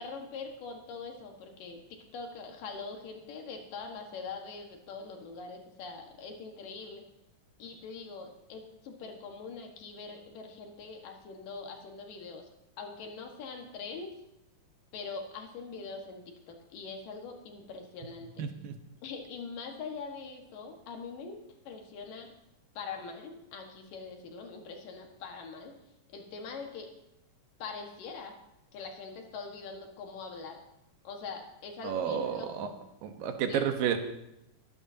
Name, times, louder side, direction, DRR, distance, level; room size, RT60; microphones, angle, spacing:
voice 1, 0.0-7.0 7.6-12.5 12.8-14.1 14.9-16.2 16.5-18.5 19.0-21.4 21.6-22.3 22.7-25.8 26.1-26.9 27.6-28.4 28.7-30.6 31.0-32.5 33.5-33.7, left 4 dB, 80° left, 2 dB, 3.3 m, -43 dB
voice 2, 18.4-18.7 31.8-32.7 33.0-34.0, right 8 dB, 90° right, 6 dB, 2.9 m, -31 dB
22.0 x 13.0 x 2.8 m, 0.84 s
omnidirectional pair, 3.9 m